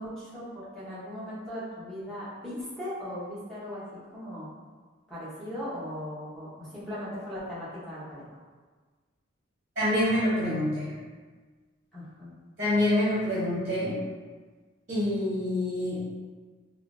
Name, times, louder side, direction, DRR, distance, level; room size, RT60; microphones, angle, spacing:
voice 1, 0.0-3.8 4.1-4.5 5.1-8.2 11.9-12.3, equal, 5° left, -12 dB, 0.8 m, -38 dB
voice 2, 9.8-10.9 12.6-13.9 14.9-16.0, left 1 dB, 40° right, -11 dB, 0.8 m, -26 dB
2.4 x 2.0 x 2.5 m, 1.4 s
head